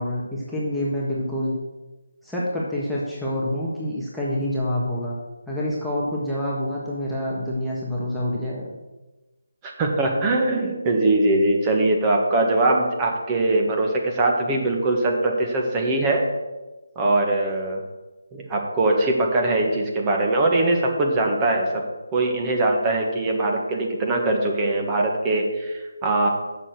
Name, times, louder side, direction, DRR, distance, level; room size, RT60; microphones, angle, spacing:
voice 1, 0.0-1.5 2.2-5.1 5.5-8.6, left 1 dB, ahead, -9 dB, 1.4 m, -27 dB
voice 2, 9.6-16.3 16.9-17.8 18.3-21.8 22.1-26.3, right 2 dB, 20° right, 0 dB, 1.7 m, -22 dB
7.3 x 6.9 x 7.9 m, 1.1 s
figure-of-eight pair, 155°, 0 cm